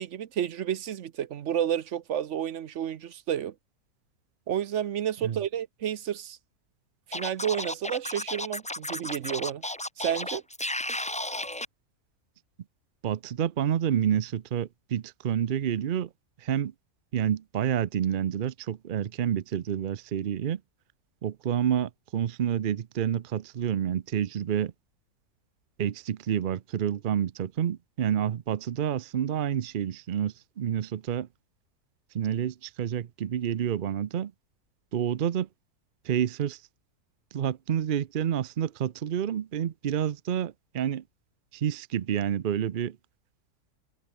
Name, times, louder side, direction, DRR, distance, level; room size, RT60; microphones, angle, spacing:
voice 1, 0.0-3.5 4.5-6.4 7.1-9.6 10.0-10.4, right 10 dB, 60° right, 0.9 m, -31 dB
Scratching (performance technique), 7.1-11.7, left 1 dB, 10° left, 0.3 m, -33 dB
voice 2, 13.0-16.1 16.4-16.7 17.1-20.6 21.2-24.7 25.8-31.3 32.1-34.3 34.9-35.5 36.0-36.6 37.3-41.0 41.5-43.0, right 9 dB, 75° right, 0.4 m, -29 dB
omnidirectional pair, 1.7 m